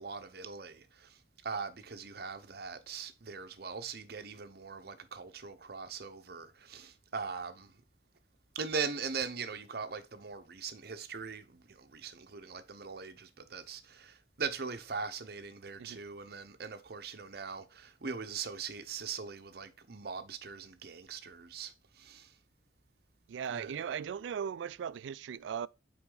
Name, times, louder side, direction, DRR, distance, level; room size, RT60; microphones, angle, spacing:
voice 1, 0.0-7.7 8.5-22.3 23.5-23.7, right 5 dB, 60° right, 0.8 m, -41 dB
voice 2, 23.3-25.7, right 7 dB, 90° right, 0.3 m, -38 dB
5.9 x 4.3 x 3.8 m
head